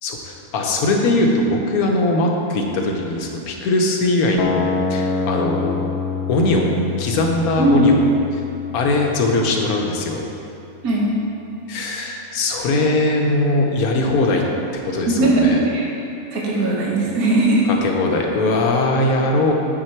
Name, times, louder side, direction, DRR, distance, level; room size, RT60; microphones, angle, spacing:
voice 1, 0.0-5.8 6.3-8.0 8.3-8.4 8.7-10.2 11.7-14.4 14.8-15.6 17.7-19.5, left 2 dB, 90° left, 1 dB, 1.3 m, -20 dB
sound 1, 4.4-10.4, left 4 dB, 65° left, 0.6 m, -26 dB
voice 2, 7.6-7.9 10.8-11.1 15.2-15.9 16.3-17.7, right 2 dB, 85° right, -3 dB, 1.7 m, -18 dB
8.9 x 4.4 x 4.5 m, 2.8 s
omnidirectional pair, 1.5 m